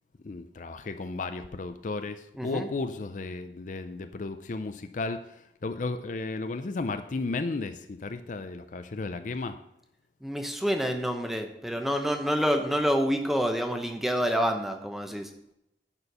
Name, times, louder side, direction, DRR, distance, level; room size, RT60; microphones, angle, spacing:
voice 1, 0.2-9.6, left 3 dB, 45° left, 9 dB, 0.5 m, -34 dB
voice 2, 2.4-2.7 10.2-15.3, equal, ahead, 5 dB, 0.9 m, -27 dB
11.0 x 4.5 x 6.7 m, 0.82 s
head